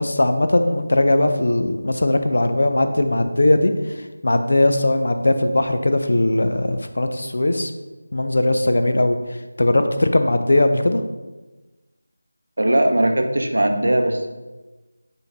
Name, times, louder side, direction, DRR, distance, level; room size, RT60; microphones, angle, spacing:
voice 1, 0.0-4.0 4.2-7.7 8.1-9.2 9.6-11.0, left 1 dB, 65° left, 8 dB, 0.4 m, -19 dB
voice 2, 12.6-14.3, right 1 dB, 80° right, 5 dB, 0.6 m, -19 dB
4.5 x 3.2 x 3.3 m, 1.2 s
figure-of-eight pair, 170°, 0 cm